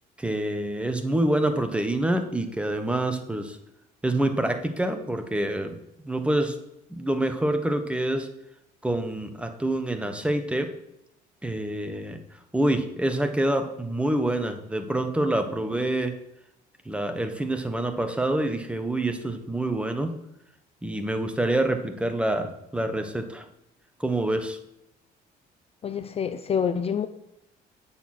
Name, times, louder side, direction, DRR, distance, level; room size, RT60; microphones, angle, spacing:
voice 1, 0.2-3.6 4.0-5.7 6.0-6.6 6.9-8.3 8.8-10.7 11.4-12.2 12.5-16.2 16.8-20.1 20.8-23.4 24.0-24.6, right 1 dB, 5° right, 7 dB, 1.2 m, -26 dB
voice 2, 25.8-27.1, left 7 dB, 35° left, 11 dB, 0.6 m, -27 dB
9.5 x 7.0 x 6.0 m, 0.86 s
cardioid pair, 110°, 17 cm